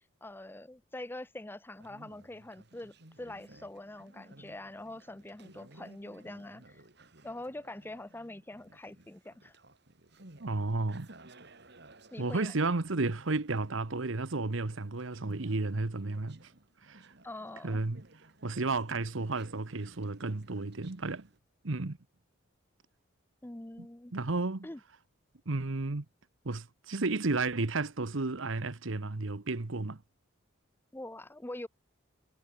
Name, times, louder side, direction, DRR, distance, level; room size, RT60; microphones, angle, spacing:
voice 1, 0.2-6.8 7.2-9.6 12.1-12.5 17.2-17.8 23.4-24.1 24.6-24.8 30.9-31.7, left 1 dB, 10° left, 0.5 m, -44 dB
Conversation, 1.7-21.4, right 2 dB, 55° right, 2.7 m, -57 dB
voice 2, 10.4-11.1 12.2-16.4 16.8-17.1 17.6-18.0 18.4-21.3 21.6-22.0 24.1-24.7 25.5-26.0 26.4-30.0, right 3 dB, 70° right, 1.1 m, -32 dB
head